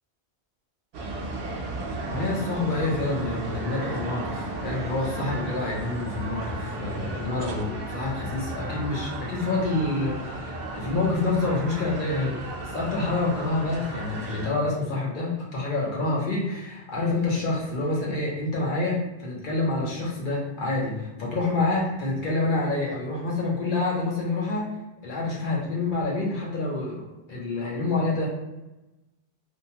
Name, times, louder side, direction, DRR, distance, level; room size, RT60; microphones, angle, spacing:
sound 1, 0.9-14.5, right 2 dB, 75° right, 0.8 m, -34 dB
voice 1, 2.1-24.8 25.0-28.3, left 2 dB, 50° left, -4 dB, 0.9 m, -27 dB
2.8 x 2.2 x 2.8 m, 1.0 s
omnidirectional pair, 1.1 m